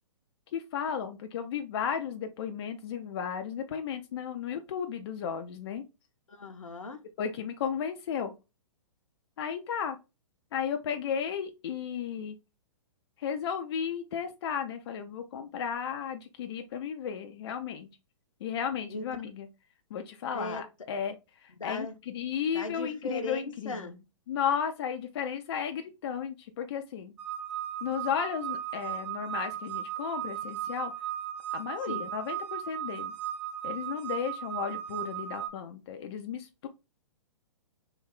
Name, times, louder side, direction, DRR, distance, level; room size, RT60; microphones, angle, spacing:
voice 1, 0.5-5.8 7.2-8.3 9.4-10.0 10.5-12.4 13.2-17.9 18.4-19.5 19.9-21.1 21.4-24.0 24.3-27.1 27.8-30.9 31.5-33.1 33.6-36.7, left 7 dB, 50° left, 0.4 m, -34 dB
voice 2, 6.3-7.0 18.9-19.0 20.3-20.6 21.6-21.9 22.5-23.9 31.8-32.1, left 2 dB, 80° left, 0.7 m, -37 dB
sound 1, 27.2-35.5, right 11 dB, 65° right, 0.9 m, -36 dB
3.3 x 2.3 x 3.5 m
figure-of-eight pair, 120°, 17 cm